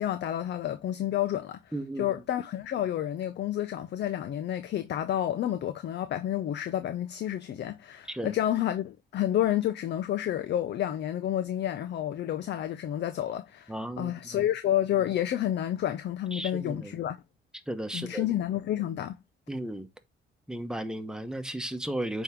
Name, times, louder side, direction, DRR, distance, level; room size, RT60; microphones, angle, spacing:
voice 1, 0.0-1.7 2.0-17.2 17.9-19.2, left 11 dB, 60° left, 0.6 m, -30 dB
voice 2, 1.7-2.1 8.1-8.4 13.7-14.5 16.3-17.0 17.7-18.3 19.5-19.9 20.5-22.2, right 1 dB, 5° right, 1.0 m, -35 dB
8.8 x 3.6 x 3.6 m
cardioid pair, 90°, 20 cm